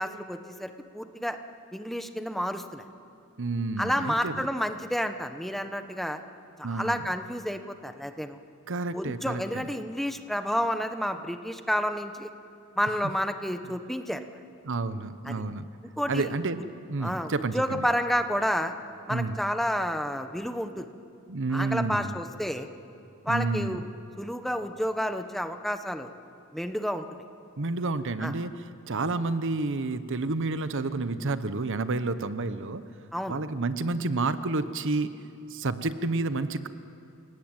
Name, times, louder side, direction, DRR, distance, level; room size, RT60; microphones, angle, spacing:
voice 1, 0.0-1.4 1.7-2.8 3.8-6.2 6.6-8.4 8.9-12.3 12.8-14.2 15.3-15.4 16.0-16.3 17.0-18.7 19.1-20.9 21.5-22.7 23.2-23.9 24.2-26.1 26.5-27.0 28.2-28.3 33.1-33.4, equal, ahead, 7 dB, 1.0 m, -30 dB
voice 2, 3.4-4.5 6.6-7.0 8.7-9.7 14.6-15.7 16.1-17.8 19.1-19.4 21.3-22.1 23.3-23.8 27.6-32.8 33.3-35.1 35.5-36.7, right 3 dB, 60° right, 12 dB, 1.0 m, -30 dB
29.0 x 18.5 x 9.0 m, 2.6 s
head